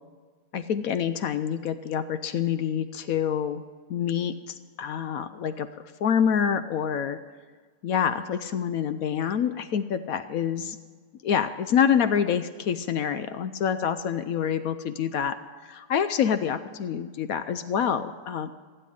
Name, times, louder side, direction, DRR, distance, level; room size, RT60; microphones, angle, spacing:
voice 1, 0.5-3.6 3.9-7.2 7.8-10.8 11.2-15.4 15.6-18.5, left 8 dB, 65° left, 11 dB, 0.9 m, -27 dB
15.5 x 7.9 x 9.9 m, 1.5 s
omnidirectional pair, 1.8 m